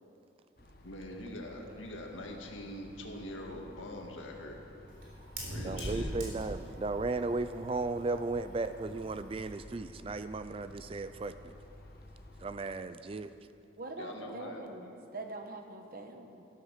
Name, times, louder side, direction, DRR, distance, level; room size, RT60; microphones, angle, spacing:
sound 1, 0.6-12.5, left 1 dB, 50° left, 1.2 m, -54 dB
voice 1, 0.8-4.6 5.5-6.2 14.0-14.6, left 1 dB, 85° left, 1 dB, 1.9 m, -43 dB
Fire, 3.5-9.6, right 1 dB, 75° right, 3.8 m, -43 dB
voice 2, 5.6-11.5 12.4-13.3, right 3 dB, 30° right, 12 dB, 0.3 m, -35 dB
voice 3, 13.8-16.4, right 2 dB, 50° right, 5 dB, 1.1 m, -44 dB
13.0 x 12.0 x 6.6 m, 2.8 s
head